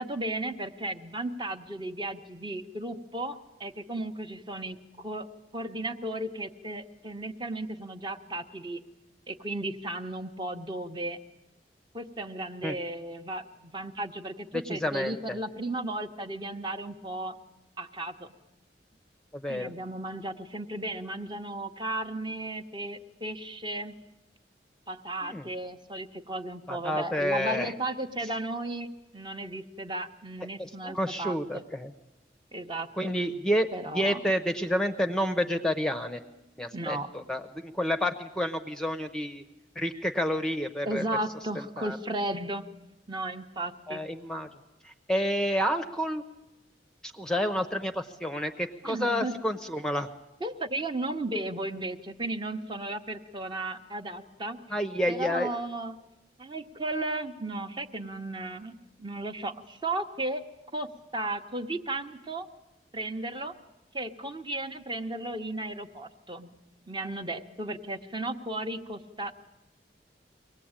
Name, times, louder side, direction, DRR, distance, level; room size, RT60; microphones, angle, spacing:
voice 1, 0.0-5.3 5.5-8.8 9.3-11.2 11.9-17.3 17.8-18.3 19.5-24.0 24.9-28.9 29.1-31.6 32.5-32.9 33.7-34.2 36.7-37.1 40.8-42.6 43.1-44.0 48.8-49.4 50.4-54.7 55.1-56.0 56.4-60.4 60.7-60.9 61.1-62.5 62.9-63.5 63.9-66.5 66.9-69.3, right 1 dB, 25° right, 7 dB, 0.9 m, -35 dB
voice 2, 14.5-15.4 19.3-19.7 25.2-25.5 26.7-27.7 30.6-31.9 33.0-33.7 33.9-36.2 36.6-39.4 39.8-41.0 41.8-42.0 43.9-44.5 44.8-46.2 47.0-50.1 54.7-55.5, equal, 5° left, 7 dB, 0.7 m, -29 dB
24.0 x 18.0 x 8.8 m, 1.0 s
head